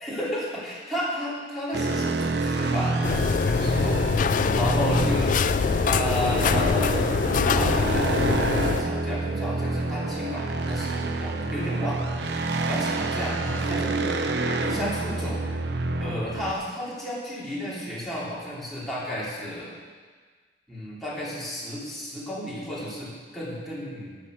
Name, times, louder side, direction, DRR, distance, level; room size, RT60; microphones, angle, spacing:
voice 1, 0.0-5.3 5.8-7.1 7.5-8.1 8.5-14.1 14.6-15.4 16.0-19.7 20.7-24.2, left 1 dB, ahead, -9 dB, 3.0 m, -33 dB
sound 1, 1.7-16.5, right 3 dB, 70° right, 0.8 m, -28 dB
sound 2, 3.0-8.8, left 5 dB, 50° left, 0.3 m, -24 dB
11.5 x 6.9 x 6.3 m, 1.5 s
head